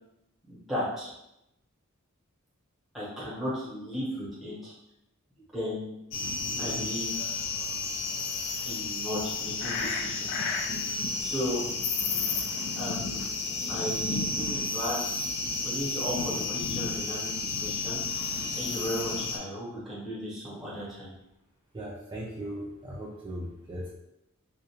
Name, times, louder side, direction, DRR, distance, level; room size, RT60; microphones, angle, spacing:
voice 1, 0.5-1.1 2.9-4.7 5.5-5.9 6.6-7.4 8.6-10.3 10.8-11.6 12.7-13.2 13.7-15.1 15.5-18.0 18.5-21.1, equal, ahead, -8 dB, 0.8 m, -35 dB
sound 1, 6.1-19.4, left 4 dB, 55° left, 0.3 m, -31 dB
voice 2, 21.7-23.9, right 1 dB, 20° right, -5 dB, 0.3 m, -38 dB
2.4 x 2.1 x 2.8 m, 0.85 s
head